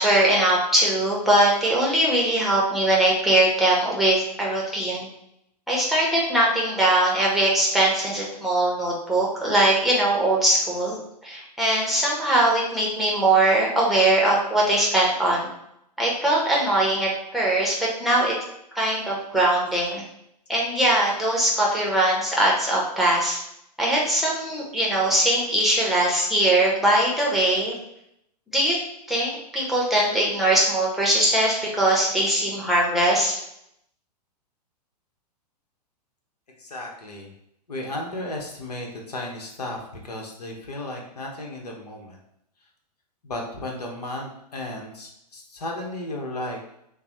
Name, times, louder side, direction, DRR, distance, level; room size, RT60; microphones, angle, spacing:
voice 1, 0.0-5.1 5.7-11.0 11.2-15.5 16.0-18.4 18.7-20.0 20.5-23.4 23.8-27.7 28.5-28.8 29.1-33.4, right 1 dB, ahead, -4 dB, 1.1 m, -21 dB
voice 2, 36.6-37.3 37.7-42.2 43.2-46.6, left 1 dB, 70° left, 0 dB, 1.1 m, -34 dB
6.7 x 2.3 x 3.1 m, 0.77 s
figure-of-eight pair, 105°, 21 cm